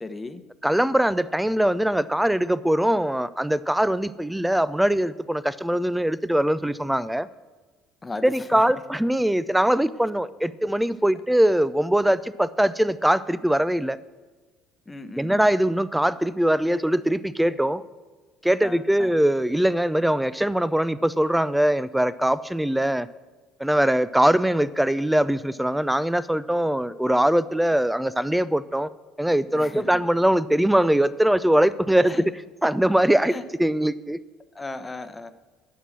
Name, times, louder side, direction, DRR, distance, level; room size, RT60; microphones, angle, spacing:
voice 1, 0.0-0.4 8.0-8.6 14.9-15.5 18.6-19.1 29.5-30.0 32.0-32.3 33.2-33.4 34.5-35.3, left 3 dB, 20° left, 10 dB, 0.9 m, -36 dB
voice 2, 0.6-7.3 8.2-14.0 15.2-17.8 18.4-23.1 23.6-28.9 29.2-32.2 32.6-33.3 33.6-34.2, right 1 dB, 5° right, 17 dB, 0.4 m, -22 dB
11.0 x 6.0 x 7.3 m, 1.3 s
hypercardioid pair, 70°, 0 cm